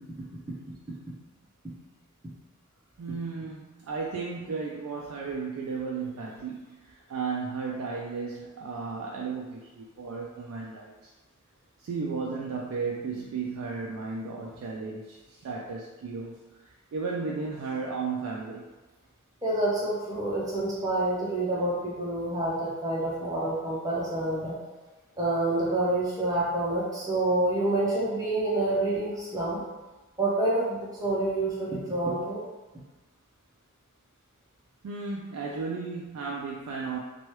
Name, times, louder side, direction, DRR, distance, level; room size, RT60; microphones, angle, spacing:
voice 1, 3.0-11.1 11.8-18.7 34.8-37.0, right 4 dB, 85° right, -2 dB, 0.3 m, -34 dB
voice 2, 19.4-24.6 25.2-29.6 30.2-32.4, right 2 dB, 15° right, -7 dB, 0.6 m, -27 dB
2.9 x 2.3 x 3.0 m, 1.2 s
head